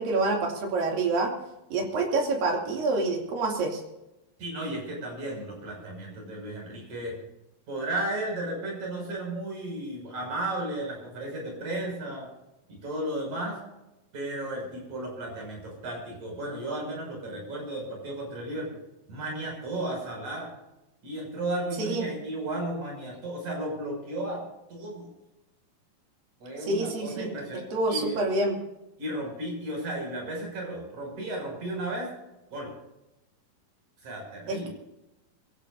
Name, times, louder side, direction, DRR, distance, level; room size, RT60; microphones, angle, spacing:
voice 1, 0.0-1.3 1.7-3.8 21.8-22.1 26.7-27.3 27.7-28.6 34.5-34.7, right 3 dB, 75° right, 0 dB, 4.5 m, -27 dB
voice 2, 4.4-7.2 7.7-12.3 12.7-13.6 14.1-18.7 19.1-20.5 21.0-24.4 24.7-25.1 26.4-28.2 29.0-32.1 32.5-32.7 34.0-34.7, right 1 dB, 55° right, 0 dB, 7.7 m, -34 dB
24.5 x 17.0 x 2.7 m, 0.94 s
omnidirectional pair, 4.1 m